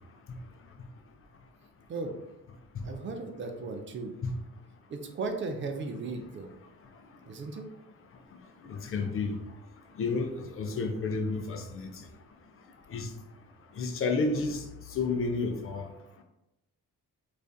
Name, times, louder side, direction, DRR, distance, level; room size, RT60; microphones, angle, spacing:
voice 1, 2.8-4.1 4.9-6.5 7.3-7.7, right 3 dB, 30° right, 5 dB, 0.4 m, -36 dB
voice 2, 8.7-9.4 10.0-11.9 12.9-13.1 13.8-14.6 14.9-15.9, left 4 dB, 30° left, 5 dB, 0.5 m, -30 dB
2.4 x 2.4 x 2.2 m, 0.93 s
hypercardioid pair, 45°, 44 cm